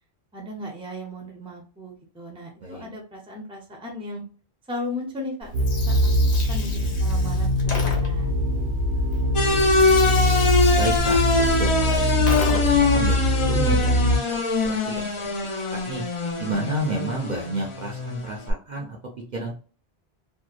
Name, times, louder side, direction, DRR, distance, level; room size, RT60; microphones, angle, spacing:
voice 1, 0.3-4.2 4.7-5.5 5.9-6.1 6.5-8.4, left 1 dB, 5° right, 1 dB, 0.5 m, -36 dB
Gurgling, 5.4-12.9, left 3 dB, 80° left, 1.0 m, -36 dB
sound 1, 5.5-14.2, equal, 85° right, 1.0 m, -22 dB
voice 2, 8.4-9.0 9.5-9.7 10.8-14.0 14.3-15.3 15.7-16.0 16.4-19.0 19.3-19.6, right 2 dB, 55° right, 0 dB, 0.6 m, -32 dB
sound 2, 9.3-18.5, left 3 dB, 50° left, 0.3 m, -23 dB
2.7 x 2.0 x 2.3 m, 0.39 s
omnidirectional pair, 1.1 m